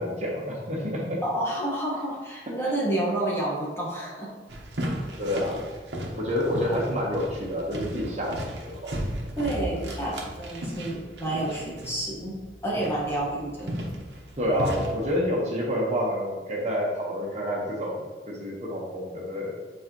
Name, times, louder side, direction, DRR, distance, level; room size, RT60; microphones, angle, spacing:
voice 1, 0.0-1.2 5.2-5.7 6.1-9.0 9.7-9.8 14.4-19.5, equal, 40° right, -3 dB, 1.2 m, -28 dB
voice 2, 1.2-4.3 9.4-12.4 12.6-13.8, right 1 dB, 15° left, -5 dB, 1.4 m, -29 dB
sound 1, 4.5-15.2, equal, 70° right, 1.1 m, -35 dB
7.5 x 4.3 x 3.0 m, 1.4 s
head